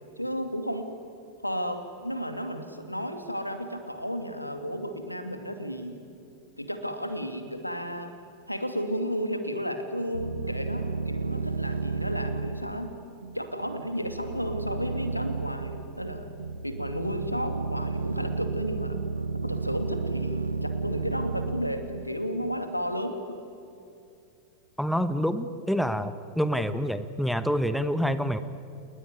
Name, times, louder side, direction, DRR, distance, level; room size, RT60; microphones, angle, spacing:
voice 1, 0.2-0.9 1.4-6.0 6.6-8.1 8.5-12.9 13.3-16.3 16.6-19.0 19.4-23.2, equal, 90° left, 8 dB, 2.4 m, -33 dB
sound 1, 10.1-22.6, right 4 dB, 80° right, 1.3 m, -32 dB
voice 2, 24.8-28.4, equal, ahead, 12 dB, 1.1 m, -27 dB
29.5 x 19.5 x 9.8 m, 2.6 s
figure-of-eight pair, 90°, 0 cm